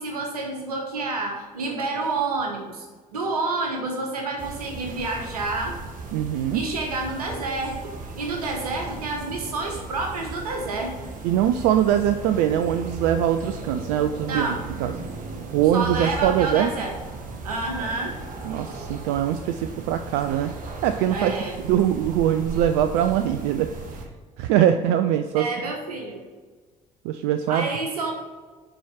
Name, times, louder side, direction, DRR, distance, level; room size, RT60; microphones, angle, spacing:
voice 1, 0.0-2.9 3.1-5.8 6.5-11.1 14.3-14.6 15.7-17.0 17.4-18.2 21.1-21.6 25.3-26.2 27.5-28.1, right 3 dB, 80° right, 2 dB, 1.2 m, -29 dB
sound 1, 4.4-24.0, right 3 dB, 45° right, 1.3 m, -37 dB
voice 2, 6.1-6.7 11.2-14.5 14.8-14.9 15.5-16.7 18.4-20.5 20.8-21.3 21.6-24.0 24.4-25.5 27.0-27.7, right 10 dB, 60° right, 9 dB, 0.4 m, -22 dB
6.9 x 4.7 x 5.6 m, 1.4 s
figure-of-eight pair, 50°, 19 cm